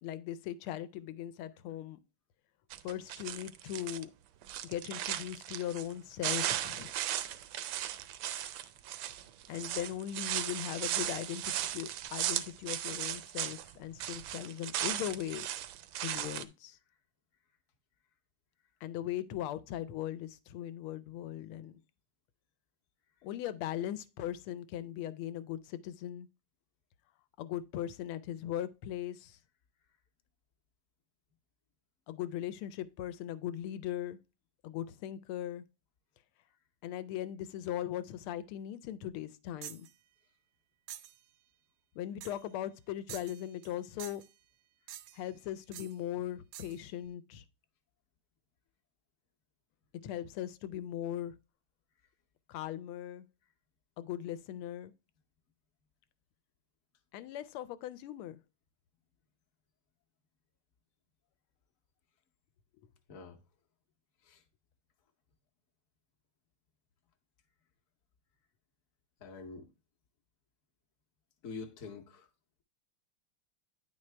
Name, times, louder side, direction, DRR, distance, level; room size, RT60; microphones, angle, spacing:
voice 1, 0.0-2.0 2.8-4.1 4.6-6.9 9.5-15.5 16.0-16.8 18.8-21.8 23.2-26.3 27.4-29.4 32.1-34.2 34.6-35.6 36.8-39.9 41.9-44.2 45.1-47.4 50.0-51.4 52.5-53.3 54.0-54.9 57.1-58.4, left 11 dB, 85° left, 1.5 m, -39 dB
sound 1, 2.7-4.0 4.4-5.9 6.2-13.7 14.0-16.4, right 12 dB, 75° right, 1.2 m, -37 dB
sound 2, 39.6-39.9 40.9-41.2 42.2-42.5 43.1-43.7 44.0-44.3 44.9-45.3 45.7-45.9 46.5-46.8, right 12 dB, 90° right, 0.9 m, -47 dB
voice 2, 69.2-69.7 71.4-72.3, left 4 dB, 55° left, 1.0 m, -45 dB
9.5 x 4.5 x 3.2 m
omnidirectional pair, 2.3 m